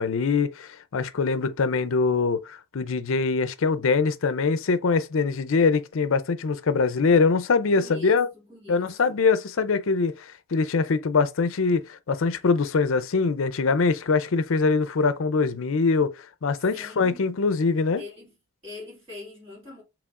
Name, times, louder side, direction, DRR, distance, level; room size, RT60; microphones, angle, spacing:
voice 1, 0.0-8.3 8.7-18.0, left 4 dB, 65° left, 0.5 m, -23 dB
voice 2, 7.7-9.2 16.7-17.4 18.0-18.4 18.6-19.8, left 2 dB, 25° right, 2.6 m, -43 dB
4.8 x 3.6 x 2.4 m
head